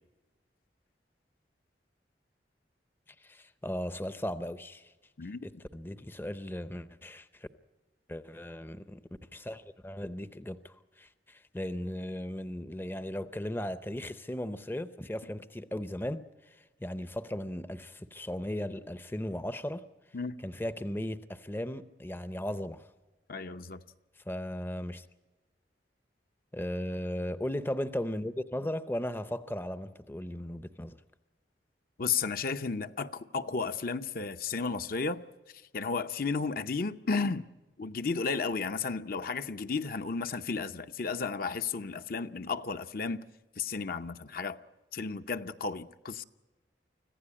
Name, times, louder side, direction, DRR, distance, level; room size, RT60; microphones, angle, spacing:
voice 1, 3.2-4.9 5.4-7.5 8.1-9.0 9.3-19.8 20.4-22.9 24.3-25.1 26.5-31.0, left 1 dB, 10° left, 0.6 m, -37 dB
voice 2, 5.2-5.6 20.1-20.3 23.3-23.8 32.0-35.2 35.7-37.5 37.8-43.2 43.6-44.6 44.9-46.2, left 4 dB, 55° left, 0.7 m, -33 dB
25.5 x 15.0 x 8.6 m
head